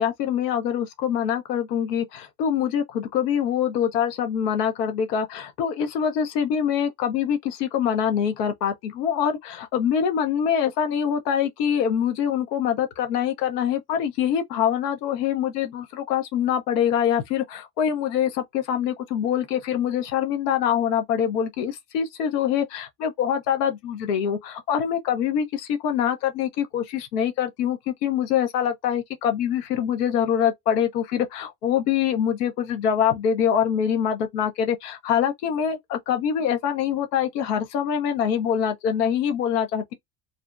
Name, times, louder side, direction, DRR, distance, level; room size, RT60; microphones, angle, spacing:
voice 1, 0.0-39.9, left 8 dB, 75° left, 0.8 m, -24 dB
2.6 x 2.1 x 2.4 m
hypercardioid pair, 75°, 49 cm